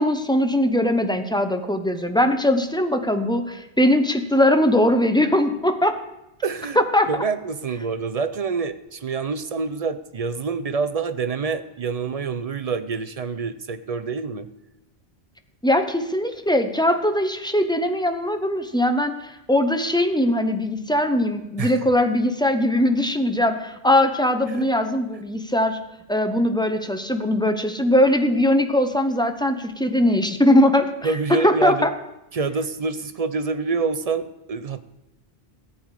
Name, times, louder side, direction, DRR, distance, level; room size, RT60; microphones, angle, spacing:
voice 1, 0.0-6.0 6.8-7.1 15.6-25.8 26.1-30.9 31.4-31.9, left 1 dB, 5° left, 7 dB, 0.6 m, -20 dB
voice 2, 6.4-6.8 7.1-14.5 21.6-21.8 24.5-24.7 31.0-31.9 32.3-34.8, right 4 dB, 45° right, 10 dB, 0.5 m, -27 dB
14.0 x 9.0 x 4.8 m, 0.91 s
omnidirectional pair, 1.1 m